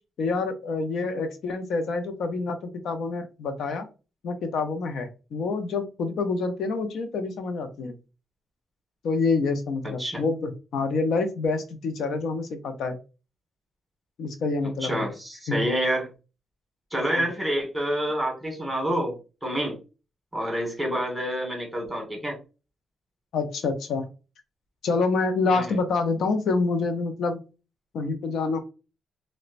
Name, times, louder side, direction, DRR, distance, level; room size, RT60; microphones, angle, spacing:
voice 1, 0.2-3.9 4.2-8.0 9.0-13.0 14.2-15.1 15.5-15.6 17.0-17.2 23.3-24.1 24.8-27.4 27.9-28.6, left 3 dB, 75° left, 7 dB, 0.5 m, -27 dB
voice 2, 9.8-10.2 14.8-16.1 16.9-19.1 19.4-19.8 20.3-22.4 25.5-25.7, equal, 5° right, 0 dB, 1.2 m, -28 dB
4.0 x 2.1 x 2.4 m, 0.31 s
wide cardioid pair, 160°, 0 cm